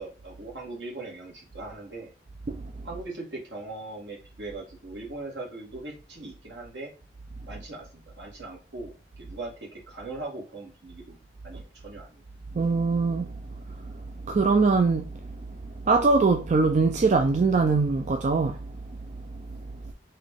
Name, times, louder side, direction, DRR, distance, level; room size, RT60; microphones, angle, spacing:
voice 1, 0.0-2.1 2.8-6.9 7.5-11.2 11.4-12.2, right 2 dB, 75° right, 1.7 m, -40 dB
voice 2, 12.5-13.3 13.8-13.9 14.3-15.1 15.8-18.6 18.9-19.0 19.3-19.6, right 4 dB, 40° right, 0.4 m, -22 dB
3.9 x 2.7 x 3.6 m
head